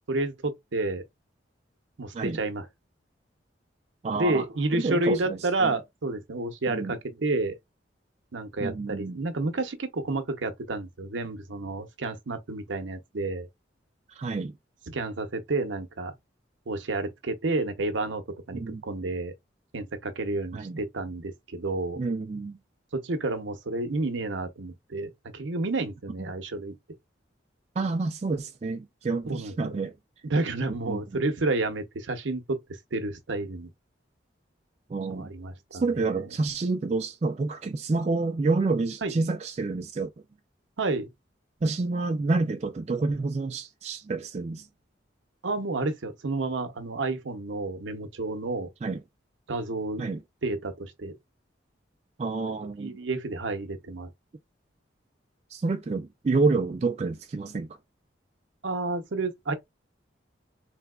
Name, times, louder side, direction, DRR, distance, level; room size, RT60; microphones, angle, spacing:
voice 1, 0.1-1.0 2.0-2.7 4.1-7.5 8.3-13.5 14.9-16.1 16.7-18.2 18.5-19.3 19.7-22.0 22.9-26.8 29.3-29.8 30.2-33.7 35.1-36.2 39.0-39.1 40.8-41.1 45.4-48.7 49.5-50.1 50.4-51.1 52.8-54.1 58.6-59.5, right 2 dB, 80° right, 0.7 m, -30 dB
voice 2, 4.0-4.4 4.7-5.7 6.7-6.9 8.6-9.2 14.2-14.5 18.5-18.8 20.5-20.8 22.0-22.6 26.2-26.3 27.8-29.9 30.9-31.2 34.9-35.3 35.7-40.1 41.6-44.7 48.8-49.0 50.0-50.2 52.2-52.9 55.5-57.8, right 3 dB, 35° right, 0.3 m, -28 dB
3.3 x 2.8 x 2.3 m
head